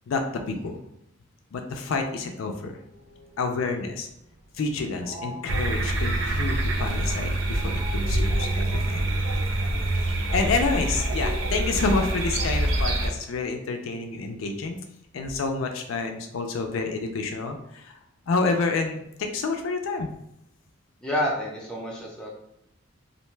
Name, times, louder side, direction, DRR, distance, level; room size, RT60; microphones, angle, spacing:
voice 1, 0.1-0.8 1.5-2.7 3.4-4.1 4.5-9.0 10.3-14.8 15.1-17.9 18.3-20.1, left 3 dB, 80° left, 4 dB, 0.4 m, -28 dB
sound 1, 2.9-11.9, equal, 35° right, 0.7 m, -43 dB
sound 2, 5.5-13.1, right 1 dB, 65° right, 0.4 m, -25 dB
voice 2, 21.0-22.3, equal, 5° left, -5 dB, 0.6 m, -28 dB
2.5 x 2.1 x 3.1 m, 0.80 s
head